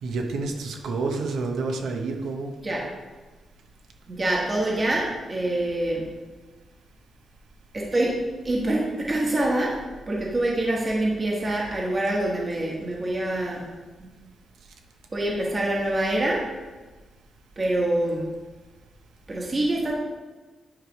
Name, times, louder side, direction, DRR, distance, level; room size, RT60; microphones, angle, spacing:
voice 1, 0.0-2.5, right 3 dB, 80° right, 3 dB, 0.9 m, -29 dB
voice 2, 4.1-6.1 7.7-8.2 8.4-13.7 14.0-14.1 15.1-16.5 17.6-18.3 19.3-20.0, right 1 dB, 25° right, -3 dB, 1.3 m, -25 dB
9.8 x 3.3 x 5.2 m, 1.3 s
wide cardioid pair, 145°, 0 cm